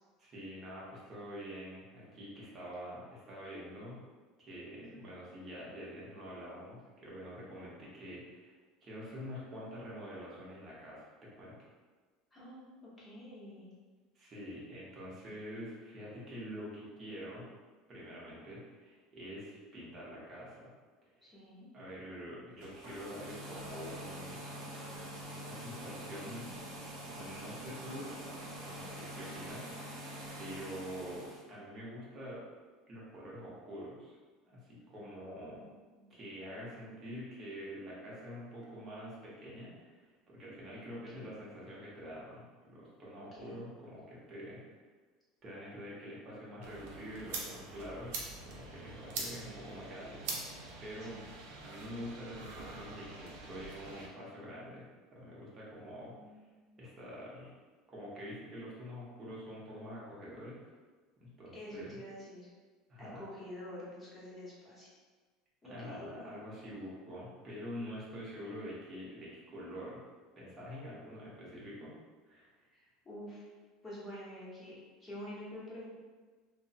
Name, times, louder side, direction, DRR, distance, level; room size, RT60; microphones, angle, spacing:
voice 1, 0.2-4.0 4.4-8.5 8.8-11.7 14.1-17.5 17.9-20.7 21.1-21.3 21.7-24.5 25.3-26.5 27.0-28.1 28.7-30.1 30.4-32.4 32.9-34.2 34.5-35.7 36.1-44.6 45.4-51.2 51.6-56.3 56.8-57.5 57.9-60.7 61.2-62.0 62.9-63.3 65.6-70.0 70.4-71.9 72.3-72.5, equal, 25° right, -6 dB, 0.8 m, -46 dB
voice 2, 12.3-12.6 13.0-13.7 21.2-21.7 35.5-35.6 36.0-36.1 40.9-41.4 43.3-43.6 51.1-51.2 56.1-56.8 61.5-62.5 63.0-64.9 65.6-66.4 72.7-73.5 73.8-75.9, left 1 dB, 15° left, -7 dB, 0.8 m, -48 dB
sound 1, 22.5-31.4, right 1 dB, 60° right, 0.9 m, -45 dB
sound 2, 46.6-54.1, right 3 dB, 80° right, 0.5 m, -44 dB
3.0 x 2.0 x 2.7 m, 1.4 s
cardioid pair, 155°, 0 cm